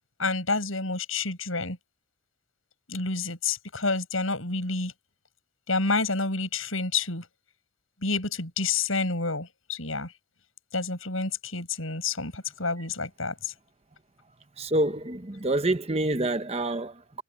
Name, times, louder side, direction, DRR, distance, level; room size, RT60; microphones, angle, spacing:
voice 1, 0.2-1.8 2.9-4.9 5.7-7.3 8.0-10.1 10.7-13.5, left 3 dB, 75° left, 7.6 m, -29 dB
voice 2, 14.6-17.2, right 1 dB, 30° right, 0.9 m, -27 dB
head